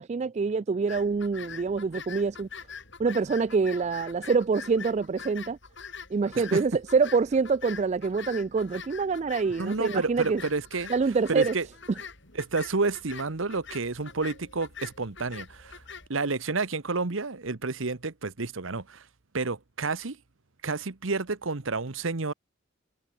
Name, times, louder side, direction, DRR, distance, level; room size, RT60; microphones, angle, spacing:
voice 1, 0.0-2.5 3.0-5.6 6.1-10.4 10.9-11.5, right 4 dB, 35° right, 0.3 m, -26 dB
sound 1, 0.9-16.1, left 6 dB, 60° left, 6.1 m, -44 dB
voice 2, 9.6-10.9 11.3-11.7 12.4-15.8 16.1-19.0 19.3-20.2 20.6-22.3, right 3 dB, 70° right, 1.2 m, -30 dB
head